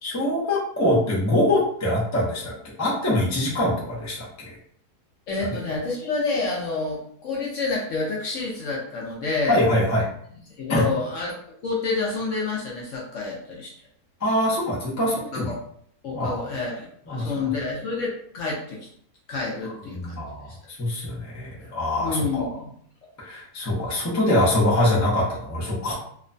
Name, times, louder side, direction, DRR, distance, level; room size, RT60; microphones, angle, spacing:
voice 1, 0.0-4.6 9.5-10.0 10.7-10.9 14.2-15.5 16.1-16.4 17.1-17.3 19.9-22.5 23.2-25.9, left 1 dB, 25° left, -6 dB, 0.3 m, -24 dB
voice 2, 5.3-9.6 10.6-11.4 11.6-13.7 15.3-15.5 16.0-18.9 19.3-20.2 20.5-20.6 22.0-22.7, left 3 dB, 65° left, -3 dB, 0.8 m, -28 dB
2.9 x 2.1 x 2.5 m, 0.65 s
omnidirectional pair, 1.7 m